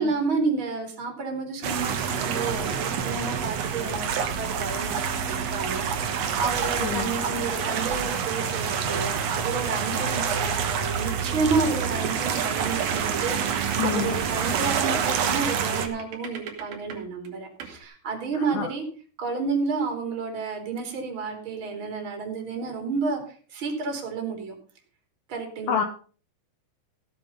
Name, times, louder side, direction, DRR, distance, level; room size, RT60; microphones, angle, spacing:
voice 1, 0.0-18.9 19.2-23.2 23.5-24.5 25.3-25.8, right 4 dB, 35° right, 4 dB, 3.7 m, -30 dB
sound 1, 1.6-15.9, right 7 dB, 55° right, 2.2 m, -27 dB
voice 2, 6.8-7.1 13.8-14.2 18.5-18.7 25.7-25.8, left 8 dB, 70° left, 6 dB, 2.4 m, -27 dB
sound 2, 11.4-17.0 17.3-17.4 17.6-17.8, right 7 dB, 85° right, 4.3 m, -37 dB
16.0 x 8.5 x 5.5 m, 0.40 s
omnidirectional pair, 4.2 m